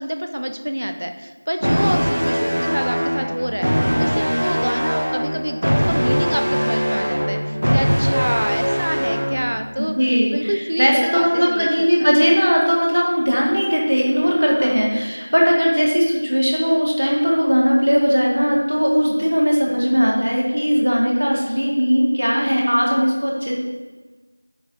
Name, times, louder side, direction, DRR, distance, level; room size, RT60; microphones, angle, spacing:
voice 1, 0.0-3.7 4.0-12.1 14.6-14.8 19.7-20.3, equal, 30° right, 6 dB, 0.4 m, -27 dB
sound 1, 1.6-9.6, equal, 60° right, 1.5 m, -21 dB
voice 2, 9.9-23.5, equal, 45° right, -2 dB, 1.7 m, -18 dB
9.4 x 4.2 x 4.1 m, 1.2 s
figure-of-eight pair, 180°, 0 cm